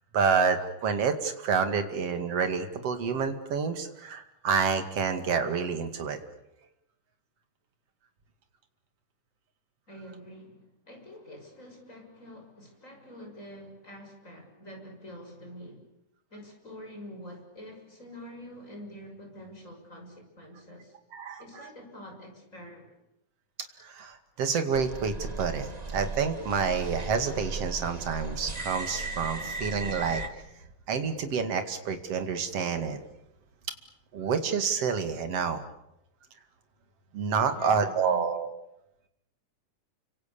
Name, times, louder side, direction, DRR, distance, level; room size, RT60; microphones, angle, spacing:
voice 1, 0.1-6.2 21.1-21.7 23.8-30.2 30.9-33.0 34.1-35.6 37.1-38.5, right 5 dB, 55° right, 7 dB, 3.1 m, -28 dB
voice 2, 9.9-15.9 16.3-21.0 21.4-22.9 37.5-38.3, equal, 25° left, 2 dB, 6.9 m, -46 dB
sound 1, 24.7-30.3, right 3 dB, 20° right, 1.1 m, -36 dB
29.5 x 25.5 x 6.9 m, 0.83 s
omnidirectional pair, 3.6 m